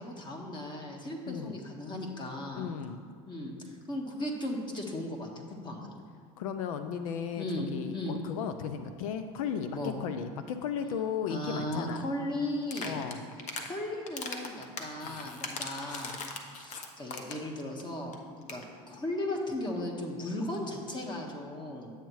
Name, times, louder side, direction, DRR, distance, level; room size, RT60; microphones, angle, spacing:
voice 1, 0.0-2.7 3.3-5.3 5.6-5.9 7.4-8.2 9.7-9.9 11.3-13.0 13.7-16.2 16.5-21.9, left 1 dB, 25° left, 1 dB, 1.5 m, -36 dB
voice 2, 2.5-3.0 6.4-7.5 7.7-12.0 12.8-13.2 15.0-15.2, left 7 dB, 85° left, 9 dB, 0.5 m, -35 dB
sound 1, 12.6-13.7 14.1-17.5 17.8-17.9 18.1-18.2 18.4-18.6, left 4 dB, 45° left, 1.0 m, -39 dB
10.0 x 8.1 x 3.1 m, 2.1 s
supercardioid pair, 100°, 17 cm